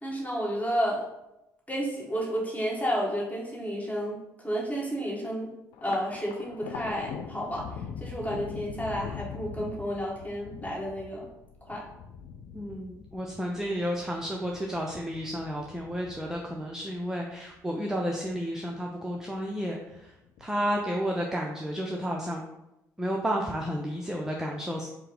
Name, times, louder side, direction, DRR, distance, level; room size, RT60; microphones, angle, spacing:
voice 1, 0.0-1.0 1.7-5.5 5.8-7.7 8.0-11.3 11.6-11.8, equal, 15° left, -3 dB, 1.4 m, -31 dB
Thunder, 5.7-18.4 18.8-19.6 19.9-20.8, left 7 dB, 55° left, 0.5 m, -43 dB
voice 2, 12.5-20.1 20.4-22.4 23.0-24.9, equal, 5° right, 0 dB, 0.5 m, -32 dB
4.6 x 2.0 x 4.5 m, 0.88 s
figure-of-eight pair, 50°, 10 cm